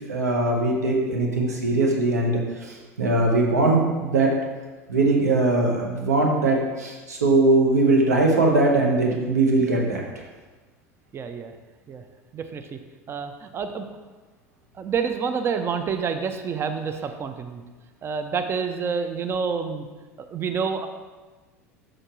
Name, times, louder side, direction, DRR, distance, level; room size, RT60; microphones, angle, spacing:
voice 1, 0.0-4.3 4.9-10.2, right 2 dB, 80° right, 0 dB, 1.0 m, -21 dB
voice 2, 11.1-11.5 11.9-12.0 12.3-12.8 13.1-13.8 14.8-17.6 18.0-19.8 20.2-20.9, right 6 dB, 30° right, 7 dB, 0.6 m, -28 dB
6.5 x 6.2 x 3.0 m, 1.3 s
figure-of-eight pair, 75°, 9 cm